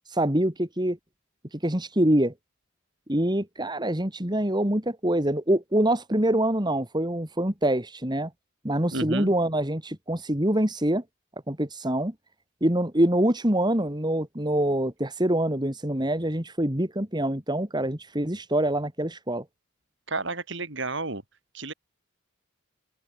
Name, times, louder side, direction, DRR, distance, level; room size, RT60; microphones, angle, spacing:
voice 1, 0.1-1.0 1.6-2.3 3.1-8.3 8.6-11.0 11.5-12.1 12.6-19.4, right 1 dB, 20° right, 3.0 m, -25 dB
voice 2, 8.9-9.3 20.1-21.2 21.5-21.7, right 2 dB, 60° right, 7.2 m, -31 dB
head